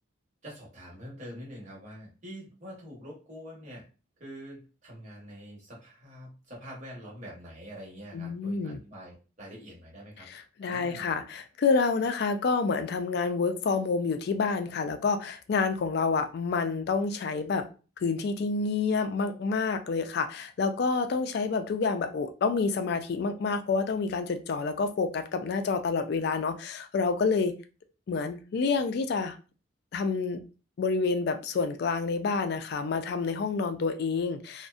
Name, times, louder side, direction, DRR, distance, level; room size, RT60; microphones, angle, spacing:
voice 1, 0.4-3.8 4.2-10.3 10.6-11.1, equal, 35° right, 1.0 m, -45 dB
voice 2, 8.1-8.8 10.3-17.7 18.0-27.5 28.1-29.4 29.9-30.4 30.8-34.7, left 4 dB, 50° left, 0.3 m, -28 dB
2.6 x 2.1 x 2.3 m
head